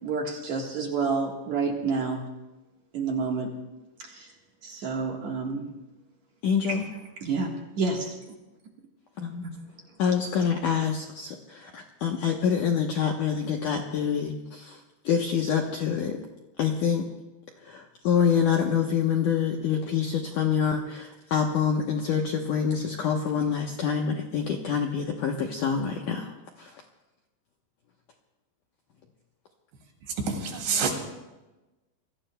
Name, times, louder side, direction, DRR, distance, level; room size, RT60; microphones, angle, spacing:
voice 1, 0.0-2.2 2.9-3.5 4.0-4.3 4.6-5.7 6.7-6.8 7.2-8.2, right 4 dB, 55° right, 0 dB, 2.1 m, -29 dB
voice 2, 6.4-6.9 9.2-9.5 10.0-16.2 16.6-17.0 17.6-26.3 26.6-26.8, left 7 dB, 75° left, 1 dB, 1.9 m, -26 dB
voice 3, 30.1-30.9, right 5 dB, 75° right, 2 dB, 4.7 m, -27 dB
27.5 x 22.5 x 2.3 m, 1.1 s
omnidirectional pair, 5.1 m